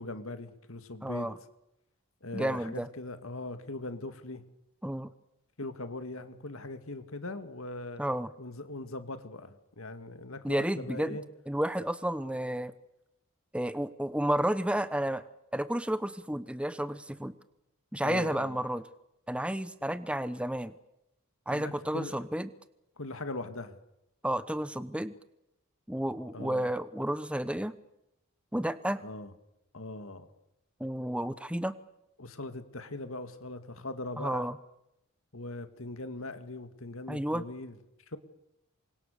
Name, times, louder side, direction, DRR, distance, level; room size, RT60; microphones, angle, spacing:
voice 1, 0.0-1.3 2.2-4.4 5.6-8.0 8.4-11.2 18.0-18.6 21.5-22.2 23.0-23.8 26.3-26.7 29.0-29.3 29.7-30.3 32.2-34.5 35.3-37.7, left 2 dB, 65° left, 9 dB, 2.2 m, -40 dB
voice 2, 1.0-1.4 2.3-2.9 4.8-5.1 8.0-8.3 10.4-11.2 11.5-12.7 13.5-15.2 15.5-17.3 17.9-18.8 19.3-20.7 21.5-22.5 24.2-25.1 25.9-27.7 28.5-29.0 30.8-31.7 34.2-34.6 37.1-37.4, right 1 dB, 5° right, 13 dB, 1.0 m, -31 dB
28.5 x 25.0 x 6.8 m, 0.82 s
head